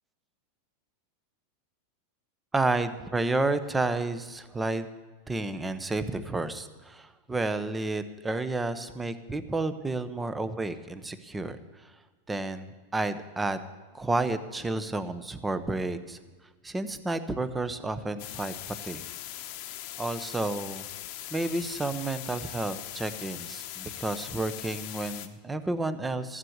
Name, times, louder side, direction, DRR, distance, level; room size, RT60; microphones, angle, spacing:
voice 1, 2.5-4.9 5.3-11.9 12.3-13.7 13.9-16.2 16.6-18.5 18.8-19.0 20.0-20.8 21.3-26.4, right 2 dB, 10° right, 12 dB, 0.7 m, -31 dB
sound 1, 18.2-25.3, left 13 dB, 50° left, 0.9 m, -40 dB
14.0 x 7.5 x 7.9 m, 1.4 s
supercardioid pair, 150°, 0 cm